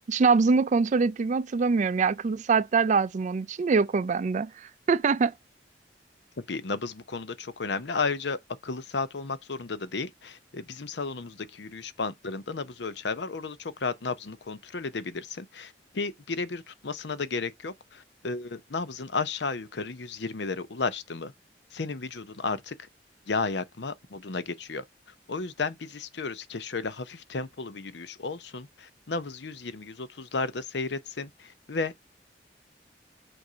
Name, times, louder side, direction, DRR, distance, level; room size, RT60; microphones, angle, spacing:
voice 1, 0.1-5.3, right 4 dB, 45° right, 0.4 m, -24 dB
voice 2, 6.5-21.3 21.7-22.9 23.3-24.8 25.3-32.0, left 4 dB, 70° left, 0.7 m, -33 dB
7.8 x 2.7 x 5.5 m
head